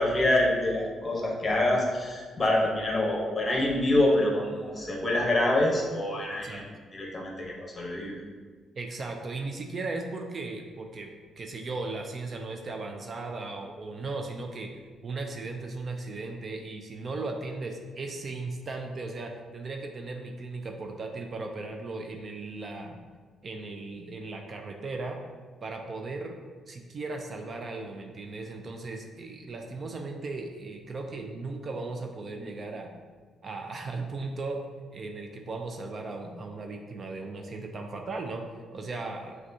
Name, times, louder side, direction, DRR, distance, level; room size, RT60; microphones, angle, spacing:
voice 1, 0.0-6.7 6.9-8.2, left 1 dB, 30° left, -1 dB, 0.9 m, -26 dB
voice 2, 8.8-14.7 15.0-23.0 23.4-25.2 25.6-26.4 26.7-32.9 33.4-34.6 34.9-39.4, right 3 dB, 45° right, 3 dB, 0.4 m, -37 dB
6.0 x 2.3 x 2.7 m, 1.5 s
cardioid pair, 90°, 0 cm